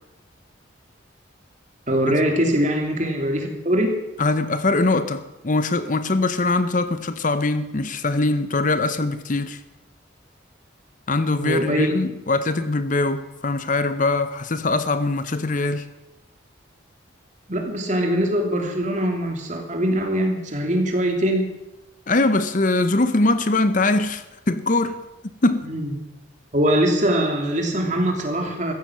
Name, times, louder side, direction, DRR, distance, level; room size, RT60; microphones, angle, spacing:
voice 1, 1.9-4.0 11.4-11.9 17.5-21.5 25.6-25.9 26.5-28.7, equal, 40° right, 2.9 m, -22 dB
voice 2, 4.2-9.6 11.1-15.9 22.1-25.0 25.4-25.7, left 2 dB, 40° left, 0.8 m, -22 dB
15.5 x 14.5 x 6.4 m
head